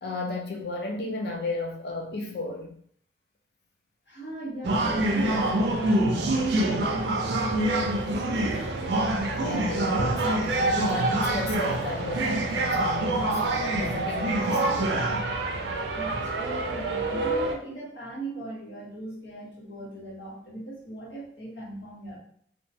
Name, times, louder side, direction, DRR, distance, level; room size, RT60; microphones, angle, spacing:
voice 1, 0.0-2.8 9.4-15.2, left 2 dB, 60° left, 1 dB, 0.5 m, -33 dB
voice 2, 4.1-8.4 15.9-22.2, right 1 dB, 80° left, -5 dB, 1.1 m, -38 dB
sound 1, 4.6-17.5, right 2 dB, 70° right, 0.4 m, -26 dB
2.9 x 2.2 x 2.6 m, 0.62 s
head